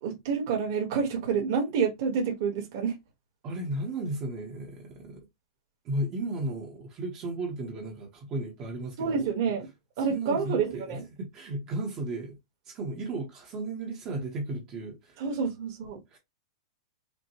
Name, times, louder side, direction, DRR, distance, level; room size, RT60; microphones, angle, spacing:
voice 1, 0.0-2.9 9.0-9.7 10.0-11.0 15.2-16.0, right 6 dB, 40° right, 1.3 m, -28 dB
voice 2, 3.4-5.3 5.8-9.3 10.1-12.4 12.6-15.2 16.1-16.2, right 2 dB, 20° right, 0.9 m, -34 dB
5.2 x 2.2 x 3.0 m
supercardioid pair, 180°, 3 cm